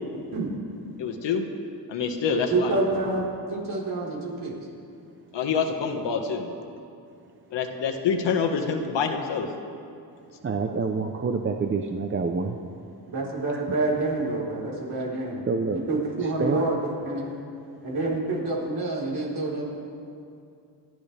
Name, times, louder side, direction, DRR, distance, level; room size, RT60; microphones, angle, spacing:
voice 1, 1.0-1.5 1.9-2.8 5.3-6.5 7.5-9.5, left 6 dB, 85° left, 3 dB, 1.7 m, -26 dB
voice 2, 2.3-3.3 3.5-4.6 13.1-15.4 15.9-17.3 17.8-19.6, right 2 dB, 65° right, -5 dB, 4.3 m, -27 dB
voice 3, 10.4-12.6 13.5-13.8 15.5-15.8 16.2-16.7, right 4 dB, 30° right, 4 dB, 0.7 m, -27 dB
29.5 x 12.5 x 3.4 m, 2.5 s
wide cardioid pair, 140°, 42 cm